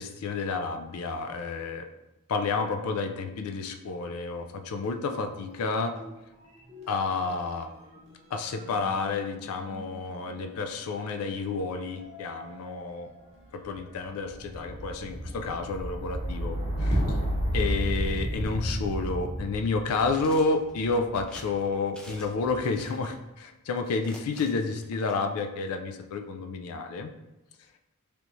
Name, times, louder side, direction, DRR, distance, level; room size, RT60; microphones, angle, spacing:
voice 1, 0.0-1.9 2.3-5.9 6.9-7.7 8.3-13.1 13.6-17.2 17.5-27.1, left 4 dB, 90° left, 6 dB, 0.4 m, -30 dB
sound 1, 4.8-6.1 6.4-21.4 22.2-22.8, equal, 30° right, 0.9 m, -34 dB
sound 2, 19.9-20.7 21.3-21.5 21.9-22.4 22.6-23.2 23.8-25.1, left 1 dB, 5° left, 0.3 m, -48 dB
3.4 x 2.9 x 2.6 m, 0.98 s
head